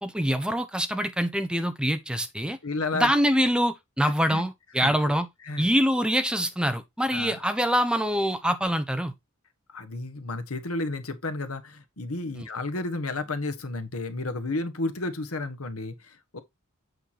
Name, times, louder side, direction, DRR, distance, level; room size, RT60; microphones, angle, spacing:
voice 1, 0.0-2.6 2.9-5.3 5.6-9.1 12.3-12.5, equal, 5° right, 0.9 m, -25 dB
voice 2, 2.6-3.1 4.3-4.4 4.8-4.9 5.5-5.7 7.1-7.4 9.7-16.4, left 2 dB, 85° left, 1.4 m, -32 dB
8.0 x 4.7 x 4.2 m
head